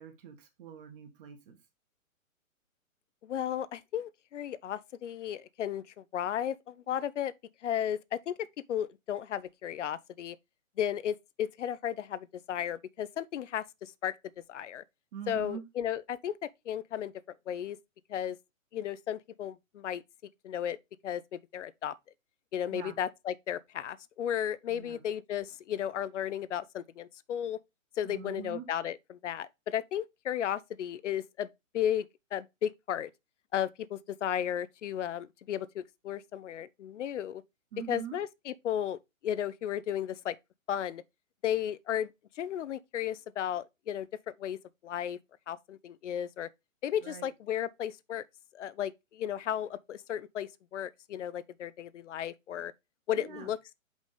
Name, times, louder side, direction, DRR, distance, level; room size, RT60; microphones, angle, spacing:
voice 1, 0.0-1.6 15.1-15.6 22.7-23.0 24.7-25.0 28.0-28.6 37.7-38.2 47.0-47.3 53.2-53.5, right 8 dB, 40° right, 1.5 m, -43 dB
voice 2, 3.2-7.3 7.6-8.3 8.7-10.4 10.8-14.1 14.5-14.8 15.3-17.1 17.5-17.8 18.1-18.4 18.7-20.0 20.4-20.8 21.0-21.9 22.5-27.6 28.0-31.5 31.7-32.0 32.3-33.1 33.5-37.4 37.9-39.0 39.2-40.4 40.7-41.0 41.4-42.1 42.4-44.1 44.4-44.6 44.8-45.2 45.5-46.5 46.8-48.2 48.5-52.7 53.1-53.8, left 10 dB, 60° left, 0.6 m, -34 dB
5.3 x 3.8 x 4.8 m
hypercardioid pair, 140°, 41 cm